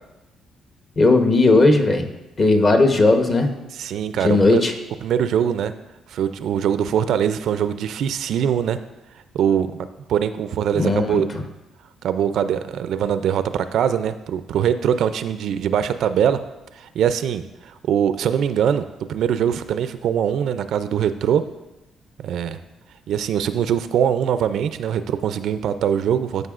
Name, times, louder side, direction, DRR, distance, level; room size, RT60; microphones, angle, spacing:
voice 1, 1.0-2.1 2.4-3.5 4.2-4.7 10.7-11.2, left 2 dB, 40° left, 5 dB, 1.0 m, -16 dB
voice 2, 3.7-4.6 5.0-5.7 6.1-8.8 9.3-9.7 10.1-11.3 12.0-16.4 16.8-21.4 22.2-22.6 23.1-26.5, right 9 dB, 75° right, 11 dB, 0.4 m, -22 dB
13.0 x 5.4 x 2.5 m, 1.0 s
cardioid pair, 90°, 0 cm